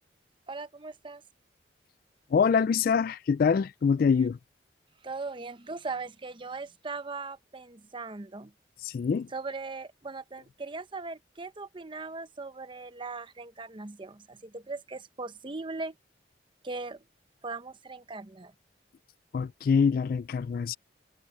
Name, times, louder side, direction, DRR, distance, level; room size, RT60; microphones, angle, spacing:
voice 1, 0.5-1.2 5.0-8.5 9.3-16.0 16.6-17.0 17.4-18.5, right 3 dB, 25° right, 0.8 m, -39 dB
voice 2, 2.3-4.4 8.8-9.3 19.3-20.8, left 6 dB, 50° left, 0.3 m, -25 dB
head